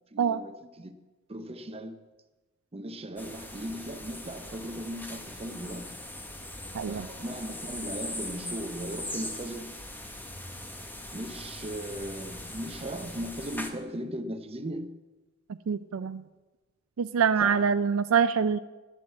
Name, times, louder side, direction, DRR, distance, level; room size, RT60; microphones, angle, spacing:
voice 1, 0.1-1.0 1.3-2.0 2.7-6.0 6.8-9.8 11.1-14.9 17.4-17.7, right 1 dB, 30° right, 0.7 m, -38 dB
sound 1, 3.2-13.7, left 1 dB, 10° left, 1.1 m, -40 dB
voice 2, 6.7-7.1 15.7-16.2 17.0-18.6, right 6 dB, 85° right, 0.4 m, -25 dB
11.0 x 7.7 x 8.4 m
head